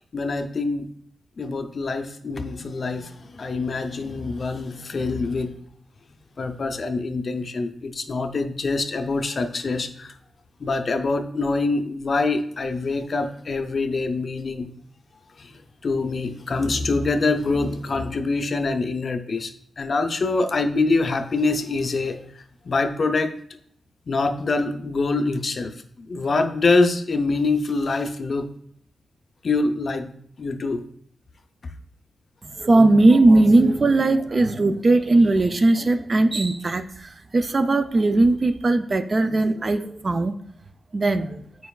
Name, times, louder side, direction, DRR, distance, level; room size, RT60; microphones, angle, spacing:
voice 1, 0.1-0.9 1.4-5.5 6.4-10.1 10.6-14.7 15.4-15.5 15.8-19.5 19.8-22.2 22.7-23.3 24.1-28.5 29.4-30.1 30.4-30.8, left 3 dB, 40° left, 8 dB, 0.4 m, -25 dB
voice 2, 32.6-36.8 37.3-40.4 40.9-41.4, right 2 dB, 30° right, 9 dB, 0.3 m, -18 dB
9.0 x 4.6 x 2.3 m, 0.65 s
wide cardioid pair, 170°, 0 cm